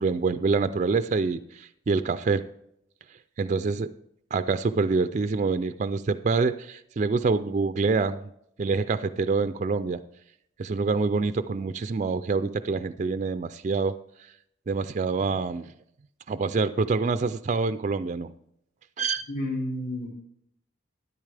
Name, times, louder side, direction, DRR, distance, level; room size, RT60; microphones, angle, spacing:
voice 1, 0.0-2.4 3.4-3.9 4.3-8.3 8.6-10.0 10.6-14.0 14.7-15.7 16.3-18.3 19.0-19.3, right 4 dB, 40° right, 12 dB, 0.3 m, -26 dB
voice 2, 19.3-20.1, left 1 dB, 50° left, -8 dB, 2.5 m, -30 dB
12.5 x 10.5 x 3.3 m, 0.74 s
head